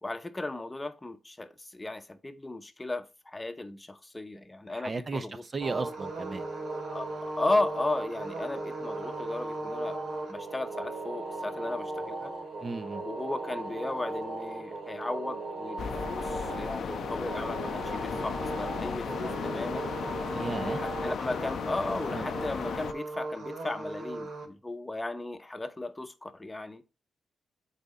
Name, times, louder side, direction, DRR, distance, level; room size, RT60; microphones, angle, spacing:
voice 1, 0.0-5.4 6.9-10.0 10.3-12.3 13.0-19.9 20.7-26.8, left 2 dB, 15° left, 0.9 m, -35 dB
voice 2, 4.7-5.3 5.5-6.4 12.6-13.0 20.3-20.8 22.1-22.3, right 3 dB, 35° right, 0.7 m, -35 dB
sound 1, 5.6-24.5, right 2 dB, 75° right, 2.5 m, -37 dB
Wind instrument woodwind instrument, 10.6-14.3, right 6 dB, 10° right, 2.8 m, -54 dB
sound 2, 15.8-22.9, left 7 dB, 70° left, 0.5 m, -35 dB
8.6 x 4.2 x 4.0 m
cardioid pair, 100°, 0 cm